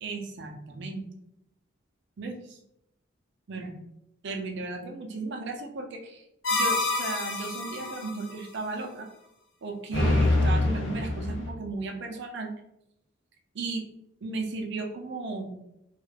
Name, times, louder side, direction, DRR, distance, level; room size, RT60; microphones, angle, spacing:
voice 1, 0.0-1.0 2.2-2.6 3.5-3.7 4.2-6.2 6.5-9.1 9.6-12.5 13.5-13.8 14.2-15.6, right 3 dB, 60° right, 3 dB, 0.5 m, -35 dB
sound 1, 6.4-8.1 9.9-11.5, left 2 dB, 70° left, 0.6 m, -26 dB
2.3 x 2.1 x 3.2 m, 0.81 s
head